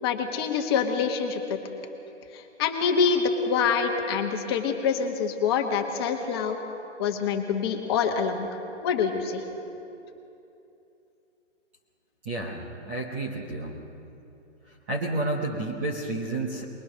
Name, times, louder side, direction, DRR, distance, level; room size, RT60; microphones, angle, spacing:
voice 1, 0.0-1.6 2.3-6.6 7.0-8.5 8.8-9.4, left 6 dB, 20° left, 4 dB, 1.4 m, -26 dB
voice 2, 12.3-13.8 14.9-16.6, right 2 dB, 10° right, -3 dB, 0.7 m, -30 dB
22.0 x 21.5 x 6.3 m, 2.9 s
hypercardioid pair, 160°, 37 cm